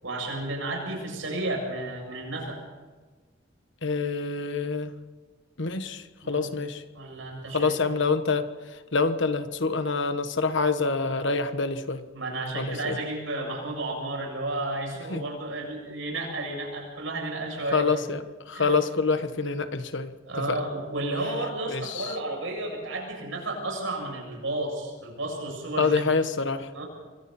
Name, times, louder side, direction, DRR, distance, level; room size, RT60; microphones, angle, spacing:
voice 1, 0.0-2.6 6.2-6.5 6.9-7.7 12.1-17.8 18.5-18.8 20.3-26.0 26.7-26.8, right 2 dB, 80° right, 0 dB, 7.8 m, -32 dB
voice 2, 3.8-4.9 5.6-6.8 7.5-8.5 8.9-12.0 12.5-13.0 15.1-15.2 17.7-20.1 20.4-20.6 21.7-22.2 25.8-26.7, left 4 dB, 65° left, 10 dB, 1.3 m, -26 dB
26.0 x 24.5 x 4.3 m, 1.4 s
head